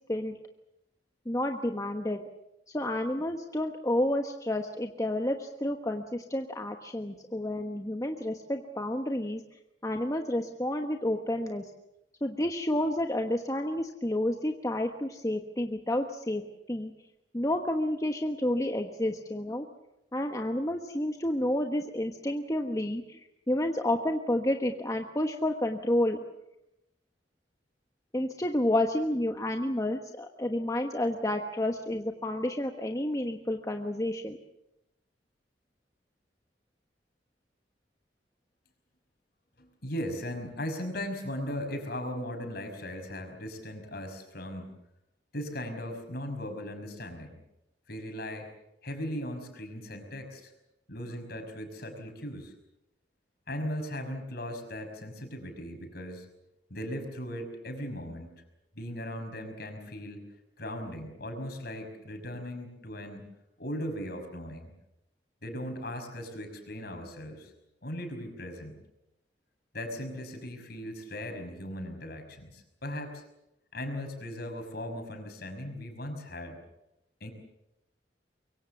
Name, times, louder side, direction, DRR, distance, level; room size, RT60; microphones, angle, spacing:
voice 1, 1.2-2.2 2.7-9.4 9.8-11.7 12.2-16.4 16.7-16.9 17.3-19.7 20.1-26.2 28.1-34.4, left 1 dB, 20° left, 4 dB, 1.2 m, -30 dB
voice 2, 39.6-44.7 45.3-47.4 47.9-48.5 48.8-50.5 50.9-52.5 53.5-56.3 56.7-58.3 58.8-60.2 60.6-63.2 63.6-64.7 65.4-67.5 67.8-68.8 69.7-73.2 73.7-76.6 77.2-77.3, equal, 55° left, 5 dB, 5.6 m, -38 dB
25.0 x 23.5 x 7.1 m, 0.86 s
head